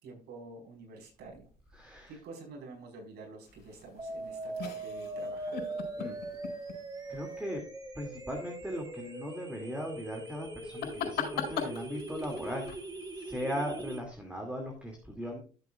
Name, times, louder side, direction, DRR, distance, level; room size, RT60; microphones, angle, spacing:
voice 1, 0.0-1.5 2.1-5.6, right 3 dB, 70° right, 1 dB, 4.9 m, -48 dB
voice 2, 1.7-2.2 6.0-6.2 7.1-7.6 8.0-12.7 13.1-15.4, equal, 5° right, 1 dB, 2.5 m, -38 dB
sound 1, 3.5-7.4 10.6-13.4, left 7 dB, 80° left, 4.9 m, -41 dB
sound 2, 4.0-14.0, right 2 dB, 25° right, 2.3 m, -41 dB
14.5 x 8.1 x 2.4 m, 0.37 s
cardioid pair, 110°, 17 cm